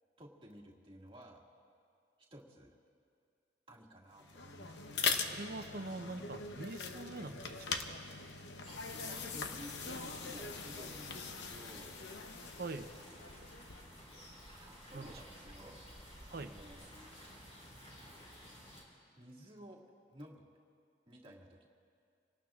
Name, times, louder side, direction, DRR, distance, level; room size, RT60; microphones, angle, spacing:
voice 1, 0.2-1.4 2.3-2.7 3.7-5.0 9.0-12.0 14.6-15.8 16.3-16.9 19.2-19.8 20.1-20.4 21.1-21.7, equal, 30° right, -2 dB, 2.0 m, -54 dB
sound 1, 4.2-14.0, left 5 dB, 70° left, 0.9 m, -41 dB
voice 2, 5.3-7.7 12.6-12.9 14.9-15.1 16.3-16.5, right 2 dB, 60° right, 8 dB, 0.8 m, -43 dB
sound 2, 8.6-18.8, equal, 35° left, 4.6 m, -54 dB
sound 3, 10.7-16.8, equal, 10° left, 2.3 m, -63 dB
27.0 x 18.5 x 2.5 m, 2.4 s
head